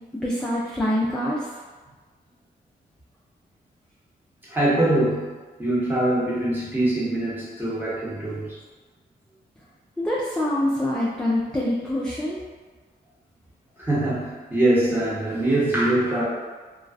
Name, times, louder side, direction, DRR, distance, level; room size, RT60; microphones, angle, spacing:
voice 1, 0.2-1.5 10.0-12.4, left 1 dB, 5° left, -6 dB, 0.4 m, -25 dB
voice 2, 4.5-5.3 5.6-8.6 13.8-16.2, right 1 dB, 10° right, -9 dB, 1.0 m, -23 dB
2.3 x 2.2 x 2.4 m, 1.4 s
cardioid pair, 70°, 18 cm